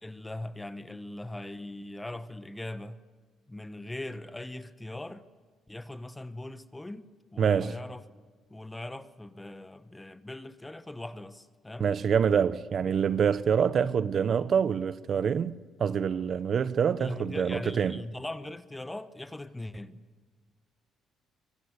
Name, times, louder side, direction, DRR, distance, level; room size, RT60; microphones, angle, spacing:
voice 1, 0.0-3.0 3.5-5.3 5.7-8.1 8.5-11.9 17.0-20.0, left 1 dB, 10° left, 1.0 m, -40 dB
voice 2, 7.4-7.8 11.8-18.0, right 7 dB, 50° right, 0.8 m, -26 dB
24.0 x 23.5 x 8.1 m
cardioid pair, 105°, 0 cm